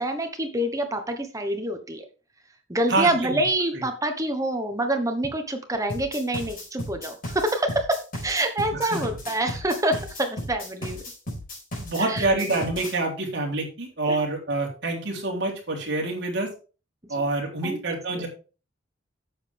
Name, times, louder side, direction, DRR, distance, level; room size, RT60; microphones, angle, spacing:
voice 1, 0.0-2.1 2.7-11.0 12.0-12.4 14.0-14.2 17.1-17.3 17.6-17.8 18.1-18.3, right 1 dB, 15° right, 6 dB, 1.1 m, -26 dB
voice 2, 2.9-3.4 8.7-9.0 11.8-16.5 17.1-18.3, right 2 dB, 60° right, -1 dB, 3.5 m, -27 dB
sound 1, 5.9-13.0, left 1 dB, 45° left, 4.8 m, -35 dB
9.5 x 7.4 x 3.5 m, 0.34 s
head